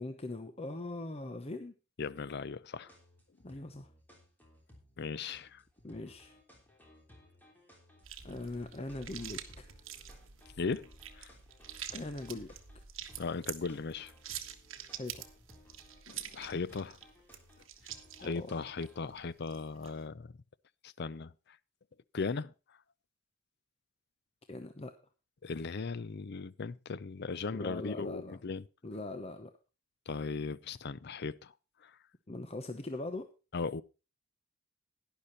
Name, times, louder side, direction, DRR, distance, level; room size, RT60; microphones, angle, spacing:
voice 1, 0.0-1.8 3.4-3.9 5.8-6.4 8.2-9.8 11.9-12.5 14.9-15.2 18.2-18.5 24.5-24.9 27.5-28.4 28.8-29.5 32.3-33.3, left 2 dB, 30° left, 0.9 m, -41 dB
voice 2, 2.0-2.9 5.0-5.6 10.6-10.9 11.2-11.3 13.2-14.1 16.1-17.0 18.2-20.3 20.8-21.3 22.1-22.5 25.4-28.7 30.1-31.5 31.8-31.9 33.5-33.8, left 4 dB, 55° left, 0.6 m, -37 dB
sound 1, 2.9-19.1, left 1 dB, 10° left, 3.3 m, -60 dB
sound 2, 8.0-20.0, right 10 dB, 70° right, 1.4 m, -47 dB
12.0 x 10.5 x 4.1 m
head